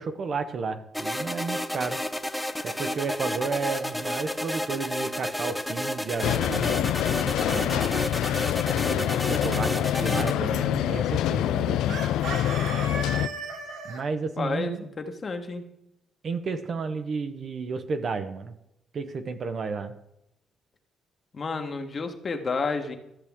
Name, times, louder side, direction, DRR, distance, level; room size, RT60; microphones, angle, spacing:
voice 1, 0.0-2.0 2.6-7.9 8.7-12.0 13.8-14.8 16.2-18.6 18.9-19.9, right 4 dB, 50° right, 9 dB, 0.8 m, -32 dB
sound 1, 0.9-10.3, left 1 dB, 5° left, 0.7 m, -31 dB
sound 2, 6.2-13.3, left 12 dB, 85° left, 0.3 m, -26 dB
Chicken rooster, 7.3-8.5 11.9-14.0, right 4 dB, 85° right, 1.7 m, -36 dB
voice 2, 14.4-15.7 21.3-23.0, left 4 dB, 40° left, 5 dB, 1.3 m, -31 dB
13.0 x 6.8 x 3.6 m, 0.83 s
cardioid pair, 90°, 0 cm